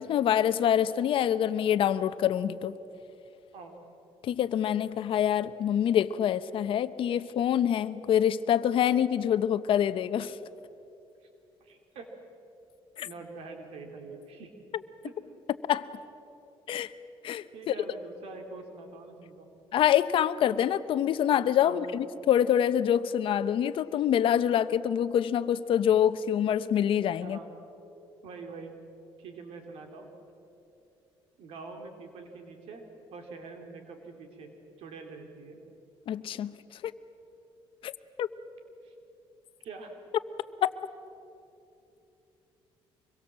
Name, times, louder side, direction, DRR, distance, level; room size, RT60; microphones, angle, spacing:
voice 1, 0.0-2.7 4.2-10.4 13.0-13.1 15.7-15.9 16.7-16.9 17.2-17.7 19.7-27.4 36.1-36.6 37.8-37.9 38.2-38.3 40.6-40.7, left 10 dB, 60° left, 13 dB, 0.9 m, -26 dB
voice 2, 11.6-12.1 13.0-14.5 15.0-15.1 17.5-19.5 21.6-21.8 27.2-27.5 28.2-28.8 29.2-30.1 31.4-32.9 33.1-34.5 34.8-35.6 38.8-38.9 39.6-40.0, right 4 dB, 75° right, 4 dB, 3.0 m, -44 dB
25.5 x 22.0 x 7.5 m, 2.8 s
cardioid pair, 115°, 10 cm